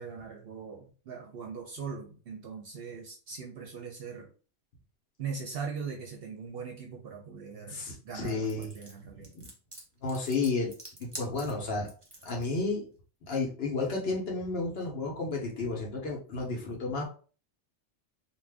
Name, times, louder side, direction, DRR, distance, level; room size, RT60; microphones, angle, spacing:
voice 1, 0.0-4.3 5.2-9.3, right 5 dB, 60° right, 1 dB, 0.7 m, -40 dB
voice 2, 7.7-8.7 9.3-9.5 10.0-10.7 11.0-11.9 12.2-12.9 13.3-17.1, left 3 dB, 55° left, 0 dB, 0.9 m, -32 dB
sound 1, 8.3-12.4, right 1 dB, 25° right, 0.7 m, -46 dB
2.5 x 2.2 x 3.3 m, 0.38 s
omnidirectional pair, 1.3 m